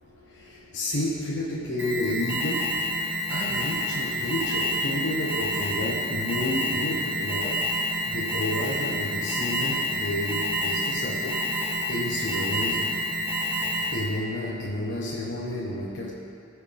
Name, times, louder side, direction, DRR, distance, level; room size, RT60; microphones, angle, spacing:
voice 1, 0.7-2.8 3.3-7.7 8.0-11.5 11.9-12.9 13.9-16.1, left 1 dB, 75° left, -6 dB, 1.3 m, -30 dB
Alarm, 1.8-14.2, equal, 10° right, 1.3 m, -28 dB
19.0 x 6.7 x 3.6 m, 2.5 s
head